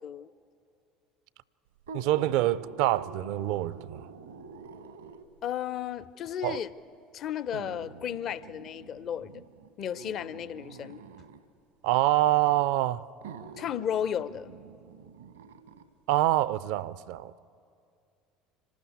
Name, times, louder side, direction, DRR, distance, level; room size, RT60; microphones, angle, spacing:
sound 1, 1.8-5.4 6.4-6.5 7.5-11.4 12.5-12.6 13.2-15.9 16.3-16.4, right 4 dB, 80° right, 1.1 m, -47 dB
voice 1, 1.9-4.0 6.4-6.6 11.8-13.1 16.1-17.4, right 15 dB, 60° right, 0.4 m, -26 dB
voice 2, 5.4-6.7 7.1-9.4 9.8-11.0 13.6-14.5, left 9 dB, 45° left, 0.5 m, -34 dB
25.5 x 12.5 x 8.6 m
figure-of-eight pair, 65°, 0 cm